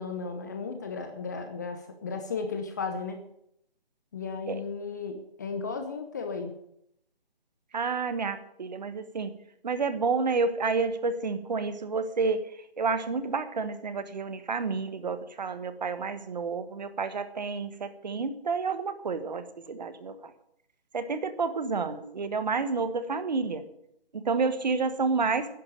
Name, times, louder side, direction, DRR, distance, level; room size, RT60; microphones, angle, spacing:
voice 1, 0.0-3.2 4.1-6.5, left 4 dB, 20° left, 6 dB, 0.8 m, -35 dB
voice 2, 7.7-9.4 9.6-12.4 12.8-20.3 20.9-23.6 24.1-25.5, right 4 dB, 45° right, 10 dB, 1.5 m, -30 dB
11.0 x 10.5 x 8.9 m, 0.76 s
figure-of-eight pair, 155°, 30 cm